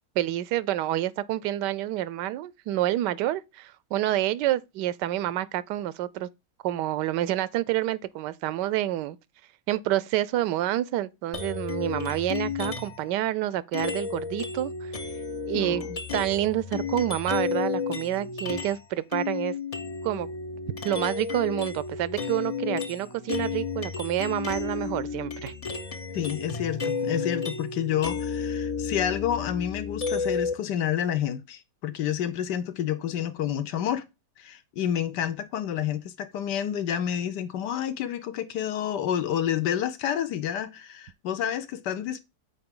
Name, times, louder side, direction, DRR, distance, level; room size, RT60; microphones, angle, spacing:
voice 1, 0.2-6.3 6.6-9.2 9.7-14.9 15.5-15.8 16.1-19.5 20.0-20.3 20.8-25.5, right 14 dB, 85° right, 1.2 m, -28 dB
sound 1, 11.3-13.1 13.7-18.8 19.1-30.5, left 5 dB, 45° left, 0.4 m, -32 dB
voice 2, 15.5-16.0 26.1-34.1 34.4-42.2, left 10 dB, 85° left, 1.4 m, -29 dB
7.8 x 4.5 x 3.7 m
omnidirectional pair, 1.8 m